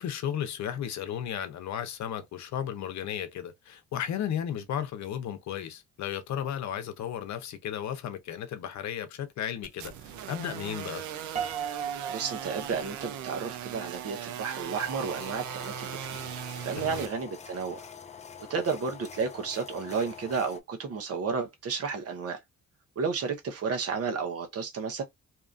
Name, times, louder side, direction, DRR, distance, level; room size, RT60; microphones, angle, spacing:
voice 1, 0.0-11.1 16.8-17.1, left 9 dB, 70° left, 0.7 m, -34 dB
sound 1, 9.6-17.1, right 10 dB, 70° right, 0.6 m, -39 dB
Piano, 11.4-13.6, right 8 dB, 25° right, 0.6 m, -36 dB
voice 2, 12.1-16.2 16.6-17.8 18.5-22.4 23.0-25.0, right 5 dB, 50° right, 1.0 m, -32 dB
sound 2, 14.8-20.6, left 7 dB, 25° left, 0.4 m, -46 dB
2.8 x 2.4 x 2.4 m
cardioid pair, 90°, 30 cm